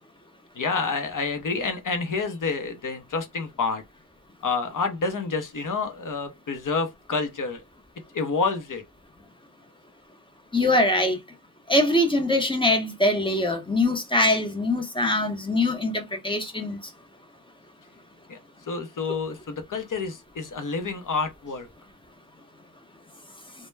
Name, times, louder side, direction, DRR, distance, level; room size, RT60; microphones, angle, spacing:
voice 1, 0.5-3.8 4.4-7.6 8.1-8.8 18.3-18.4 18.7-21.7, left 4 dB, 50° left, 0.7 m, -28 dB
voice 2, 10.5-11.2 11.7-16.9, left 1 dB, 15° left, 0.7 m, -23 dB
2.1 x 2.1 x 3.1 m
wide cardioid pair, 95°, 40 cm